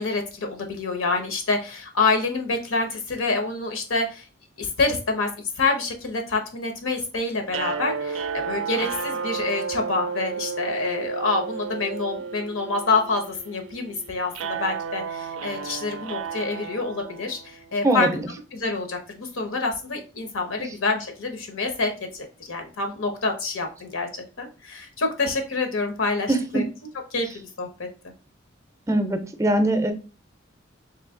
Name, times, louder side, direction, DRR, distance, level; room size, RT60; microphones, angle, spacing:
voice 1, 0.0-4.3 4.6-5.3 5.6-18.1 18.5-26.6 27.1-27.9, left 3 dB, 90° left, 4 dB, 0.9 m, -27 dB
sound 1, 7.5-17.7, right 6 dB, 85° right, 0.4 m, -32 dB
voice 2, 17.8-18.2 26.3-26.6 28.9-29.9, right 1 dB, 15° right, 7 dB, 0.4 m, -22 dB
3.2 x 2.7 x 3.6 m, 0.34 s
head